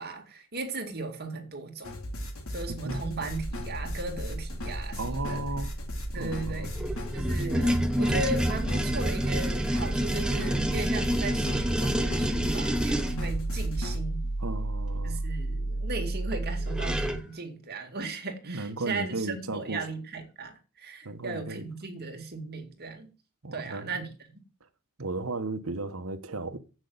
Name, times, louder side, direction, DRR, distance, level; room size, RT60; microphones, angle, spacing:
voice 1, 0.0-1.9 2.5-5.5 6.1-6.7 7.1-14.3 15.0-23.1 23.5-24.1, right 3 dB, 50° right, 2.2 m, -36 dB
sound 1, 1.8-14.0, equal, 75° left, 2.6 m, -37 dB
sound 2, 3.3-17.1, right 1 dB, 20° left, 2.0 m, -34 dB
voice 2, 5.0-5.7 6.1-6.7 14.4-15.2 18.4-19.9 21.0-21.6 23.4-24.1 25.0-26.6, right 2 dB, 70° right, 1.2 m, -35 dB
sound 3, 6.7-13.2 16.3-16.4 16.7-17.3, equal, 5° right, 0.8 m, -28 dB
8.2 x 6.3 x 7.9 m
head